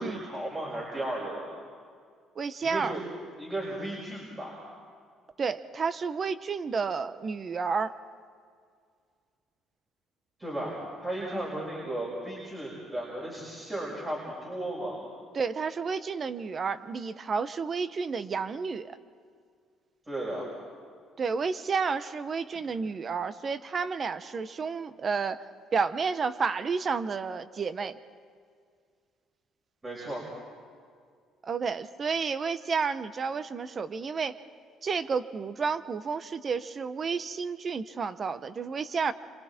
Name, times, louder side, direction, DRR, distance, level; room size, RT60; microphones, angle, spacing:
voice 1, 0.0-1.6 2.6-3.0 3.4-4.7 10.4-15.1 20.1-20.5 22.5-22.6 29.8-30.3, right 1 dB, 20° right, -4 dB, 6.5 m, -35 dB
voice 2, 2.4-2.9 5.4-8.0 15.3-19.0 21.2-25.4 25.7-28.0 31.4-34.4 34.8-39.1, right 5 dB, 40° right, 12 dB, 1.1 m, -31 dB
30.0 x 26.0 x 4.5 m, 2.1 s
cardioid pair, 105°, 0 cm